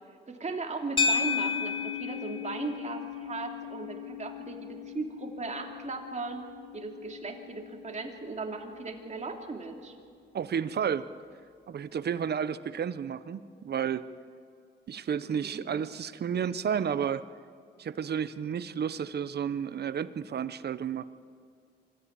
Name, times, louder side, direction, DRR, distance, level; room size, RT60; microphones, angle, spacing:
voice 1, 0.3-6.4 6.7-10.0 15.3-15.6, right 3 dB, 40° right, 3 dB, 2.9 m, -37 dB
sound 1, 1.0-9.4, left 5 dB, 25° left, 1.8 m, -35 dB
voice 2, 10.3-11.1 11.7-14.1 14.9-17.2 17.8-21.0, right 8 dB, 60° right, 14 dB, 0.9 m, -31 dB
25.0 x 14.0 x 8.9 m, 2.3 s
cardioid pair, 90°, 19 cm